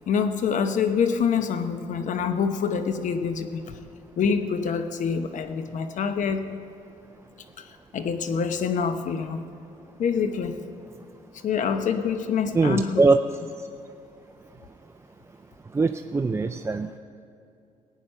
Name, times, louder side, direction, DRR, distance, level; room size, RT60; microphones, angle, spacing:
voice 1, 0.1-3.8 4.2-6.4 7.6-9.4 10.0-10.6 11.4-13.0, left 6 dB, 65° left, 8 dB, 0.9 m, -26 dB
voice 2, 12.5-13.2 15.7-17.0, right 3 dB, 20° right, 8 dB, 0.4 m, -22 dB
15.5 x 9.3 x 5.6 m, 2.6 s
cardioid pair, 90°, 14 cm